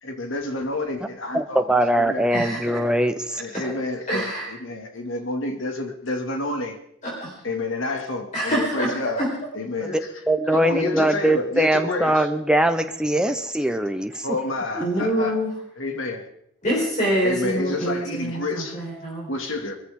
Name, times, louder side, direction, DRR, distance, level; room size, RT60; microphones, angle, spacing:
voice 1, 0.0-1.7 2.0-2.3 3.3-6.8 7.4-9.3 9.5-10.0 10.5-12.3 14.2-15.4 15.8-16.2 17.2-18.8 19.3-19.8, left 2 dB, 85° left, 4 dB, 2.4 m, -29 dB
voice 2, 1.3-3.8 10.3-14.3 15.0-15.1, right 1 dB, 5° right, 7 dB, 0.9 m, -22 dB
voice 3, 2.3-2.8 4.1-4.5 7.0-7.3 8.3-9.3 9.9-10.0 14.8-15.5 16.6-19.3, equal, 40° left, -5 dB, 4.6 m, -25 dB
22.5 x 14.5 x 3.8 m, 0.69 s
head